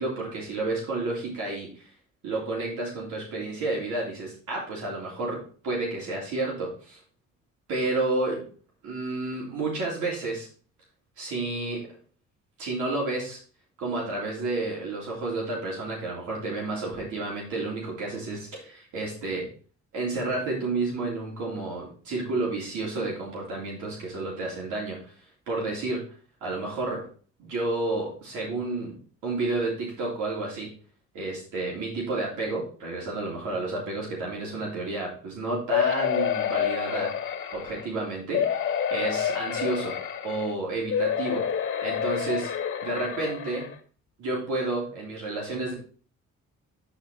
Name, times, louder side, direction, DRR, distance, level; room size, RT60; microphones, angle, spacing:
voice 1, 0.0-1.9 2.2-7.0 7.7-8.4 8.8-10.5 11.2-11.9 12.6-13.4 13.8-19.5 19.9-25.1 25.5-26.0 26.4-27.0 27.4-29.0 29.2-30.7 31.1-37.1 37.5-40.0 40.2-41.4 41.8-42.5 42.8-43.7 44.2-45.7, right 2 dB, 80° right, -4 dB, 3.4 m, -31 dB
sound 1, 35.7-37.9 38.3-40.5 40.9-43.7 44.3-44.4 44.7-44.8, left 8 dB, 45° left, 1.9 m, -28 dB
9.8 x 4.6 x 4.5 m, 0.42 s
cardioid pair, 90°, 30 cm